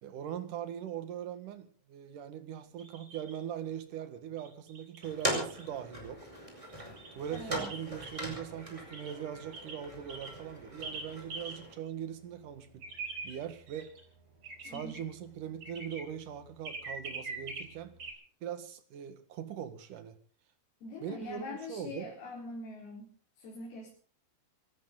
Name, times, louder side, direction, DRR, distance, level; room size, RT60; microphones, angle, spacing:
voice 1, 0.0-6.3 7.1-12.8 13.2-13.9 14.6-18.0 18.4-20.2 21.0-22.1, right 9 dB, 65° right, 3.1 m, -41 dB
sound 1, 2.8-3.4 4.4-5.7 6.7-8.2 8.9-9.1 9.5-9.8 10.1-10.3 10.8-11.0 11.3-11.5 12.0-12.1 12.3-12.4 12.5-18.1, right 3 dB, 45° right, 5.0 m, -43 dB
sound 2, 5.0-11.7, equal, 10° right, 5.1 m, -40 dB
voice 2, 7.3-7.7 14.6-14.9 20.8-23.1 23.4-23.9, left 2 dB, 85° left, 6.3 m, -43 dB
25.5 x 14.0 x 3.9 m
omnidirectional pair, 4.2 m